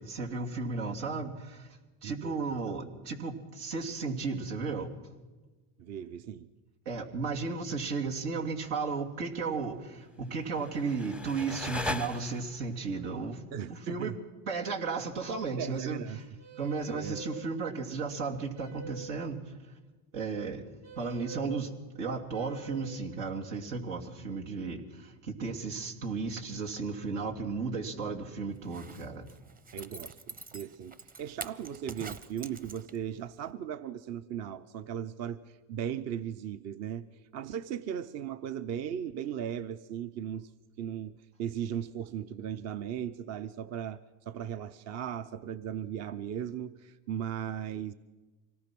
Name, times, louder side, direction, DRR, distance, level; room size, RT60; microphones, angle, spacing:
voice 1, 0.0-1.7 2.0-4.9 6.8-13.4 13.7-14.2 14.5-16.2 16.6-19.6 20.1-20.6 21.0-21.7 22.0-29.3, right 4 dB, 90° right, 2 dB, 2.9 m, -34 dB
voice 2, 2.0-2.7 5.8-6.5 13.5-14.1 15.6-16.2 16.9-17.2 29.7-37.0 37.3-40.5 40.8-44.0 44.3-47.9, right 9 dB, 45° right, 13 dB, 0.8 m, -37 dB
sound 1, 10.4-12.7, left 2 dB, 5° right, 0.6 m, -38 dB
sound 2, 16.4-17.3 18.5-19.1 20.8-21.5 22.3-23.0, right 1 dB, 70° right, 5.5 m, -46 dB
Zipper (clothing), 28.6-33.2 33.5-33.6, right 3 dB, 25° right, 1.0 m, -46 dB
25.0 x 18.5 x 6.1 m, 1.2 s
supercardioid pair, 115°, 36 cm